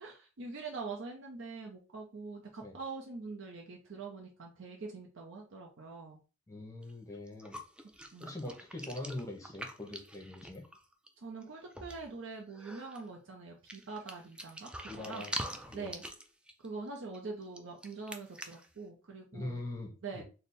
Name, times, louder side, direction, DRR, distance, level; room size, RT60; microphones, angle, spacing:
voice 1, 0.0-6.2 8.1-8.4 11.2-14.7 15.0-15.3 15.7-16.0 16.6-19.6 20.0-20.2, right 4 dB, 65° right, 0 dB, 0.6 m, -44 dB
voice 2, 6.5-7.6 8.2-10.6 14.9-15.4 15.7-15.9 19.3-20.2, left 2 dB, 15° left, 2 dB, 0.9 m, -42 dB
sound 1, 6.8-6.9 7.3-11.1 11.4-11.5 11.7-12.1 12.5-13.1 13.7-18.7, right 1 dB, 5° right, 0.3 m, -44 dB
3.4 x 2.1 x 4.2 m, 0.34 s
head